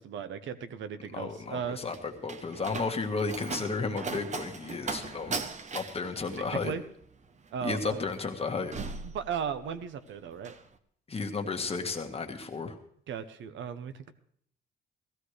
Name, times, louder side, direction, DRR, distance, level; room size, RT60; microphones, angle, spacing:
voice 1, 0.0-1.8 6.6-6.8 7.5-8.0 9.1-10.5 13.1-14.1, right 7 dB, 70° right, 12 dB, 0.9 m, -36 dB
voice 2, 1.1-5.3 5.7-6.7 7.6-8.7 11.1-12.7, left 4 dB, 30° left, 4 dB, 1.5 m, -33 dB
Slam, 1.4-9.9 10.2-10.7, right 4 dB, 35° right, 0.9 m, -39 dB
16.5 x 15.0 x 3.3 m, 0.63 s
cardioid pair, 90°, 20 cm